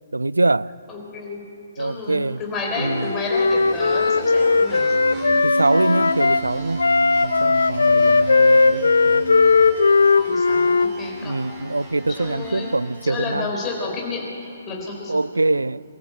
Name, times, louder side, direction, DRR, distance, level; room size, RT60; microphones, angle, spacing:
voice 1, 0.1-0.7 1.8-2.4 2.8-3.0 5.4-6.8 7.2-9.3 11.2-13.5 15.1-15.8, right 2 dB, 75° right, 0.4 m, -23 dB
voice 2, 0.9-1.4 1.7-5.0 10.3-11.4 12.1-12.7 13.0-15.2 15.4-15.6, left 3 dB, 15° left, 4.3 m, -30 dB
sound 1, 2.5-13.4, equal, 20° right, 3.6 m, -34 dB
Wind instrument woodwind instrument, 2.8-6.4 6.8-10.9, left 4 dB, 70° left, 0.6 m, -17 dB
22.5 x 14.0 x 8.1 m
figure-of-eight pair, 130°, 0 cm